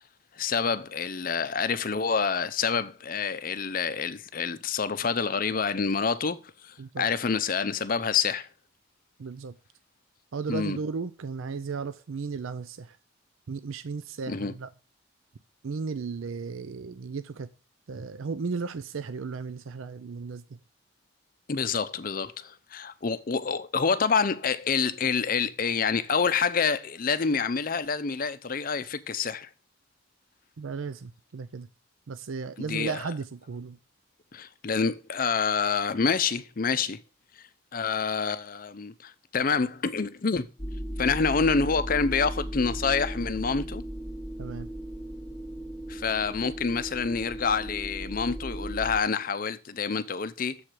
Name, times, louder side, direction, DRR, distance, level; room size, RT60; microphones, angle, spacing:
voice 1, 0.4-8.5 10.5-10.8 14.3-14.5 21.5-29.5 32.7-33.0 34.3-37.0 37.7-40.5 41.0-43.8 45.9-50.6, left 5 dB, 40° left, 0.5 m, -27 dB
voice 2, 9.2-9.5 10.3-13.0 13.5-14.7 15.6-17.5 17.9-20.4 30.6-31.7 32.1-33.8 44.4-44.7, right 5 dB, 75° right, 0.5 m, -35 dB
sound 1, 40.6-49.0, equal, 5° left, 1.0 m, -36 dB
7.1 x 4.5 x 6.5 m
head